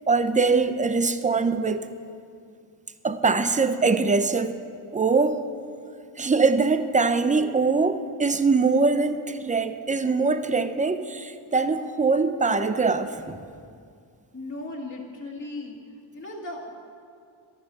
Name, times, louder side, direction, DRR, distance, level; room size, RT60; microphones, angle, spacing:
voice 1, 0.1-1.9 3.0-4.6 4.9-5.4 6.2-13.4, right 4 dB, 15° right, 11 dB, 0.5 m, -22 dB
voice 2, 14.3-15.8 16.1-16.6, left 2 dB, 25° left, -4 dB, 2.0 m, -36 dB
14.0 x 11.5 x 6.8 m, 2.3 s
wide cardioid pair, 155°, 48 cm